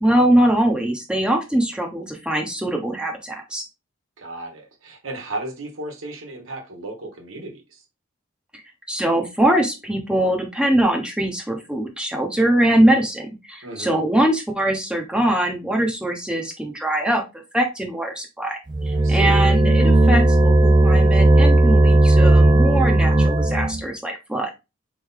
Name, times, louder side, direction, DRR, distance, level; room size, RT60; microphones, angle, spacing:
voice 1, 0.0-3.6 8.9-17.2 17.5-18.6 18.8-24.6, right 1 dB, 5° right, 0.8 m, -22 dB
voice 2, 4.2-7.8 13.6-14.0 19.0-19.4, right 2 dB, 80° right, 1.3 m, -34 dB
sound 1, 18.7-23.8, right 1 dB, 20° right, 0.4 m, -15 dB
4.1 x 3.3 x 3.6 m
head